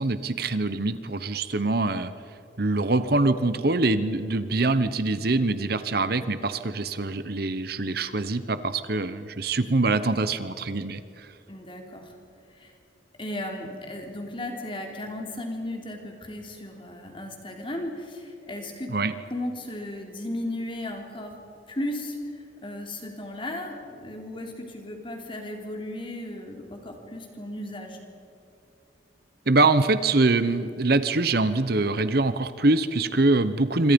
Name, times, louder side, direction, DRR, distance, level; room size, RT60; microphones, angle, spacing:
voice 1, 0.0-2.1 2.6-11.3 18.9-19.1 29.5-33.9, right 2 dB, 50° right, 12 dB, 0.9 m, -24 dB
voice 2, 11.5-12.1 12.5-12.7 13.2-18.9 19.3-21.4 21.7-28.0, left 1 dB, 25° left, 2 dB, 3.5 m, -35 dB
27.0 x 26.0 x 5.3 m, 2.7 s
head